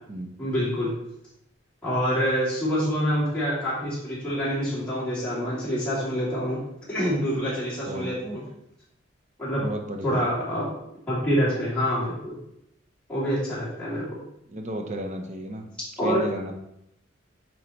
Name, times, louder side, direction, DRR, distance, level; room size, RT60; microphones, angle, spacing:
voice 1, 0.4-0.9 1.8-6.6 6.9-8.4 9.4-9.6 10.0-10.7 11.1-12.4 13.1-14.2 16.0-16.2, equal, 5° left, -11 dB, 2.7 m, -26 dB
voice 2, 9.6-10.2 14.5-15.7 16.0-16.5, equal, 40° right, 3 dB, 0.8 m, -33 dB
8.2 x 4.6 x 3.2 m, 0.80 s
head